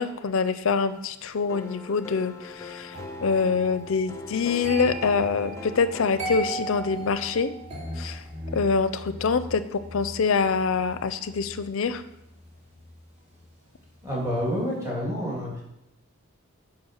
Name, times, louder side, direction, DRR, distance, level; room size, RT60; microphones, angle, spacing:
voice 1, 0.0-7.5 8.0-8.2 8.5-12.0, left 5 dB, 65° left, 13 dB, 0.4 m, -25 dB
sound 1, 1.5-7.4, left 2 dB, 15° left, 0.6 m, -42 dB
sound 2, 2.9-13.9 14.2-14.6, right 1 dB, 30° right, 2.6 m, -39 dB
voice 2, 14.0-15.6, equal, 15° right, -4 dB, 3.0 m, -28 dB
8.2 x 5.0 x 6.5 m, 0.87 s
head